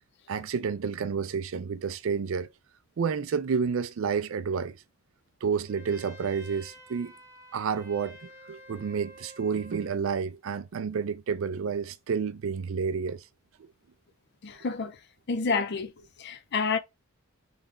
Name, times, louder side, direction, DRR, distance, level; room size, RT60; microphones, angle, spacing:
voice 1, 0.3-2.5 3.0-4.8 5.4-7.1 7.5-13.2, right 6 dB, 70° right, 0.4 m, -30 dB
Trumpet, 5.7-10.0, equal, 15° right, 0.8 m, -50 dB
voice 2, 14.4-15.0 15.3-15.9 16.2-16.8, left 4 dB, 50° left, 0.5 m, -29 dB
3.3 x 2.3 x 3.6 m
head